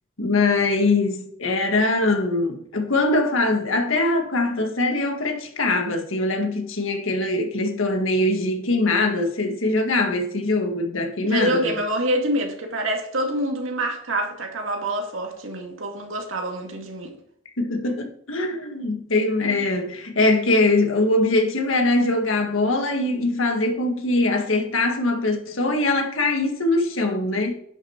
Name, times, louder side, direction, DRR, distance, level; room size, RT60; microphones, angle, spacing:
voice 1, 0.2-11.7 17.6-27.5, left 2 dB, 75° left, 1.8 m, -22 dB
voice 2, 11.2-17.1 19.4-19.7, right 1 dB, 70° right, 2.2 m, -26 dB
10.5 x 6.4 x 4.5 m
head